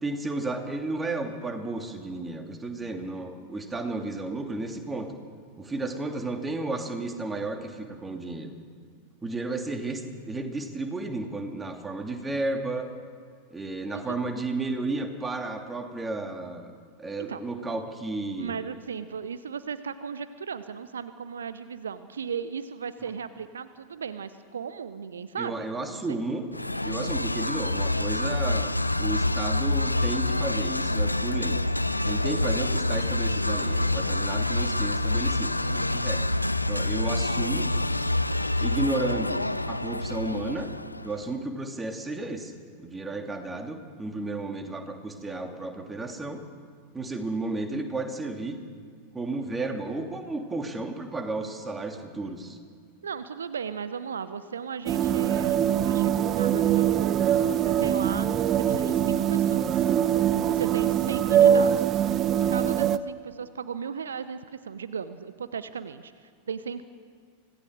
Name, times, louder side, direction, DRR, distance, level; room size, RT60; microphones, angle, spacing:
voice 1, 0.0-5.1 5.6-8.5 9.2-10.0 10.3-12.9 13.5-16.7 17.0-18.5 23.0-23.1 25.4-26.4 26.8-31.6 32.0-36.2 36.7-37.7 38.6-39.4 39.7-40.7 41.0-46.4 46.9-48.6 49.1-52.6, right 2 dB, 10° right, 4 dB, 2.7 m, -33 dB
voice 2, 18.4-25.6 25.8-26.2 53.0-59.9 60.5-62.1 62.5-66.8, right 6 dB, 70° right, 13 dB, 0.8 m, -36 dB
sound 1, 26.5-41.2, left 2 dB, 85° left, 0.6 m, -27 dB
sound 2, 54.9-63.0, right 9 dB, 30° right, 0.8 m, -23 dB
25.5 x 18.0 x 6.6 m, 2.1 s
figure-of-eight pair, 90°, 0 cm